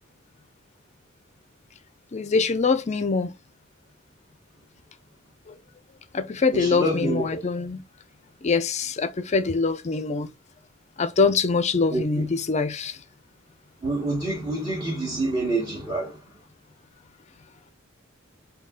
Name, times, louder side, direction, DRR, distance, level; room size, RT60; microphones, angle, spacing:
voice 1, 2.1-3.3 6.1-7.8 8.4-10.3 11.0-12.9, left 4 dB, 35° left, 0.5 m, -24 dB
voice 2, 6.5-7.4 11.9-12.3 13.8-16.2, right 2 dB, 25° right, 1.2 m, -27 dB
4.1 x 2.8 x 3.6 m
head